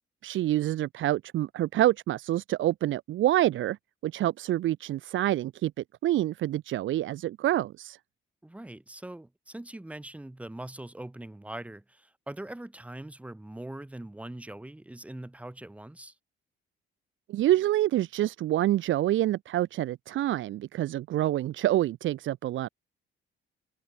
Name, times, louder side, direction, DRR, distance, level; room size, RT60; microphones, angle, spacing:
voice 1, 0.2-5.7 6.0-8.0 17.3-22.7, right 14 dB, 70° right, 1.0 m, -27 dB
voice 2, 8.4-16.1, right 1 dB, 5° right, 6.1 m, -42 dB
cardioid pair, 175°, 21 cm